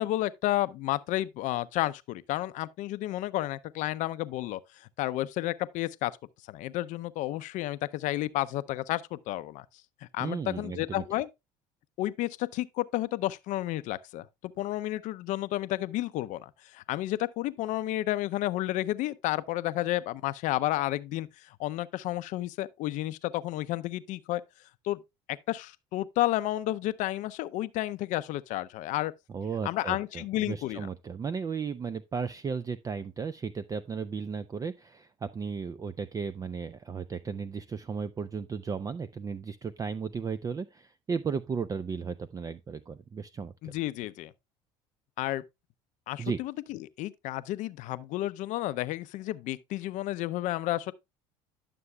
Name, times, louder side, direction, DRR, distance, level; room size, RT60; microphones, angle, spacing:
voice 1, 0.0-6.1 6.5-9.6 10.0-11.3 12.0-24.4 24.8-25.0 25.3-29.1 29.6-30.9 43.6-44.3 45.2-45.4 46.1-50.9, left 15 dB, 65° left, 0.5 m, -31 dB
voice 2, 10.2-11.0 29.3-43.7 46.2-46.4, right 5 dB, 25° right, 0.4 m, -35 dB
11.0 x 6.8 x 2.2 m
supercardioid pair, 90°, 14 cm